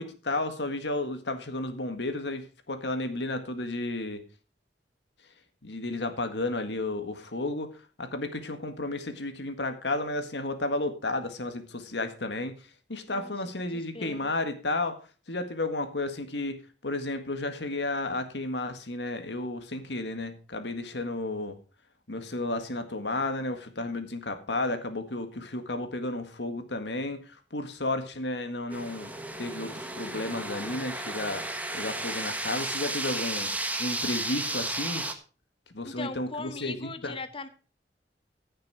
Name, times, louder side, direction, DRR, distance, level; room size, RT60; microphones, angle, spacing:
voice 1, 0.0-4.2 5.6-15.0 15.3-16.6 16.8-21.6 22.1-33.5 33.8-35.1 35.7-37.2, left 2 dB, 75° left, 8 dB, 1.8 m, -33 dB
voice 2, 13.7-14.3 35.8-37.5, left 3 dB, 30° left, 10 dB, 0.9 m, -39 dB
sound 1, 28.7-35.1, right 2 dB, 10° right, 1.3 m, -33 dB
15.0 x 6.7 x 4.8 m, 0.36 s
head